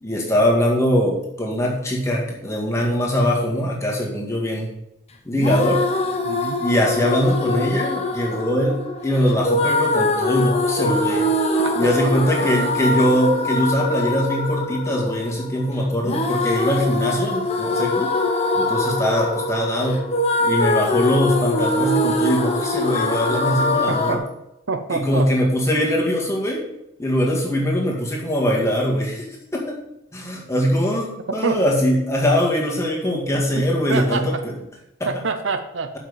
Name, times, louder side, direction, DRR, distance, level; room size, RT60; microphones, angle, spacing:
voice 1, 0.0-4.7 5.3-5.8 6.6-11.3 11.8-18.1 18.5-20.0 20.4-24.2 24.9-26.6 27.0-29.3 29.5-29.8 30.1-34.3, equal, 15° left, -2 dB, 2.0 m, -21 dB
sound 1, 5.3-24.2, left 2 dB, 30° left, 1.0 m, -23 dB
voice 2, 6.2-6.6 11.6-11.9 12.4-12.5 23.9-24.2 24.7-25.3 31.4-31.6 33.5-33.6 33.9-34.4 35.0-35.9, right 4 dB, 65° right, 7 dB, 0.8 m, -26 dB
7.5 x 5.8 x 7.2 m, 0.86 s
head